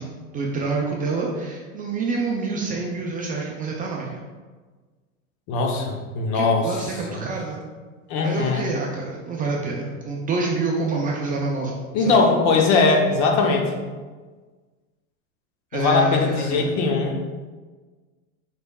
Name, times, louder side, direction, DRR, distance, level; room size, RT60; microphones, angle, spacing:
voice 1, 0.0-4.2 6.3-7.6 8.2-12.1 15.7-16.7, right 3 dB, 25° right, -2 dB, 0.3 m, -27 dB
voice 2, 5.5-6.7 7.1-7.2 8.1-8.6 11.9-13.8 15.7-17.2, left 4 dB, 60° left, 2 dB, 0.8 m, -20 dB
4.2 x 3.3 x 2.3 m, 1.4 s
supercardioid pair, 115°, 40 cm